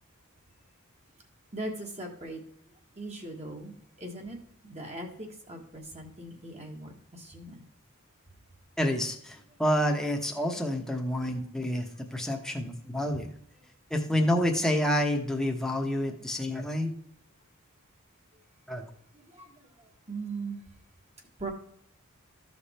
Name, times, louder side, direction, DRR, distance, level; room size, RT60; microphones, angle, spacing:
voice 1, 1.5-2.4 3.0-4.4 4.6-7.6 12.3-12.4 12.8-12.9 19.1-20.6 21.4-21.5, right 2 dB, 30° right, 1 dB, 1.5 m, -40 dB
voice 2, 8.8-13.3 13.9-16.9 18.7-18.8, equal, ahead, 2 dB, 1.1 m, -28 dB
13.5 x 5.2 x 4.3 m, 0.67 s
head